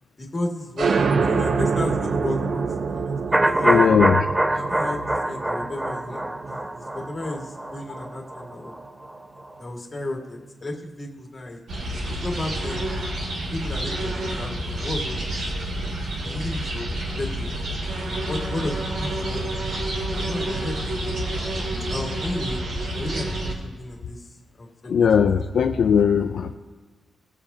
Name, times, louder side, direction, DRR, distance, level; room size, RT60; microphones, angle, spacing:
voice 1, 0.2-3.9 4.6-8.7 9.6-12.8 13.5-15.5 15.7-15.9 16.2-17.5 18.3-19.8 20.2-21.1 21.9-22.6 22.9-24.3 24.6-25.4, left 1 dB, 30° left, 1 dB, 2.0 m, -33 dB
sound 1, 0.8-8.0, right 5 dB, 55° right, 0.6 m, -26 dB
sound 2, 3.3-9.2 9.5-9.6, right 1 dB, 10° right, 0.5 m, -24 dB
voice 2, 3.6-4.2 24.9-26.5, left 7 dB, 75° left, 5 dB, 0.5 m, -19 dB
sound 3, 11.7-23.5, right 1 dB, 70° right, 2.8 m, -29 dB
19.5 x 7.1 x 2.8 m, 1.4 s
wide cardioid pair, 115°, 0 cm